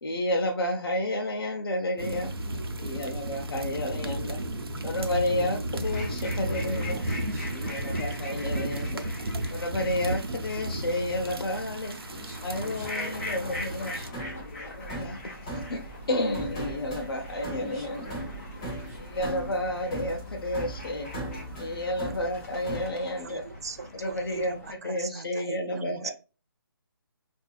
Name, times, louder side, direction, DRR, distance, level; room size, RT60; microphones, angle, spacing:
voice 1, 0.0-2.3 2.8-4.4 4.8-7.0 7.5-9.1 9.5-12.0 12.4-14.0 14.4-15.2 15.5-18.0 19.0-21.1 21.6-23.5 23.9-26.1, left 1 dB, 75° left, 1 dB, 0.8 m, -31 dB
voice 2, 2.0-3.2 6.6-8.0 8.3-8.9 11.8-14.4 17.6-19.0, equal, 10° right, -6 dB, 1.8 m, -48 dB
sound 1, 2.0-14.1, right 1 dB, 85° right, 0.7 m, -33 dB
sound 2, 5.8-24.7, left 2 dB, 40° left, 1.2 m, -42 dB
sound 3, 14.1-22.9, right 1 dB, 15° left, 0.8 m, -39 dB
voice 3, 23.2-24.5 25.0-26.1, right 5 dB, 45° right, 9 dB, 0.4 m, -38 dB
4.3 x 2.7 x 2.3 m, 0.33 s
hypercardioid pair, 170°, 12 cm